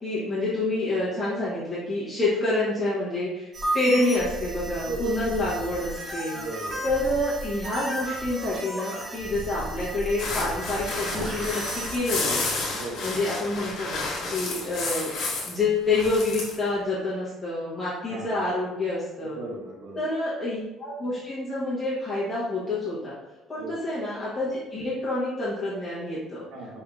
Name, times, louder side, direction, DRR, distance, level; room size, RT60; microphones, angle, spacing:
voice 1, 0.0-3.5 3.7-6.4 6.8-12.6 13.0-15.1 15.5-19.4 20.0-23.1 23.5-26.4, left 2 dB, 15° left, -10 dB, 1.0 m, -28 dB
sound 1, 3.5-12.0, right 1 dB, 20° right, 0.7 m, -34 dB
voice 2, 4.7-5.1 5.4-5.5 6.3-6.8 12.7-13.1 18.1-18.3 19.3-20.0 23.6-23.8 26.5-26.8, right 2 dB, 65° right, -1 dB, 1.1 m, -37 dB
sound 2, 10.2-15.6 15.9-16.5, left 3 dB, 55° left, 1.4 m, -31 dB
5.0 x 3.4 x 2.3 m, 1.0 s
cardioid pair, 155°, 0 cm